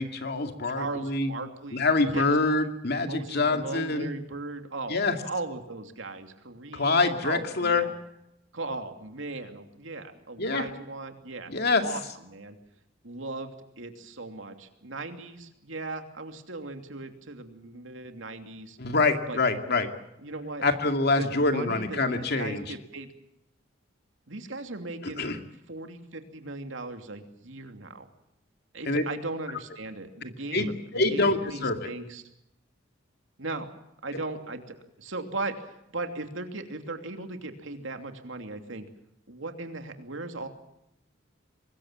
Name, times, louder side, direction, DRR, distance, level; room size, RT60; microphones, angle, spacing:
voice 1, 0.0-1.3 1.7-4.1 4.9-5.2 6.7-7.9 10.4-10.7 11.5-11.8 18.8-19.9 20.6-22.6 25.2-25.4 28.9-29.0 30.5-31.9, left 3 dB, 55° left, 6 dB, 2.4 m, -25 dB
voice 2, 0.6-2.3 3.0-7.9 8.5-11.5 11.8-12.6 13.0-18.8 19.3-19.4 20.2-20.7 21.2-23.1 24.3-25.3 25.7-28.1 28.7-32.3 33.4-33.7 34.0-38.9 39.3-40.5, right 2 dB, 75° right, 6 dB, 2.9 m, -38 dB
24.0 x 21.0 x 7.5 m, 0.83 s
head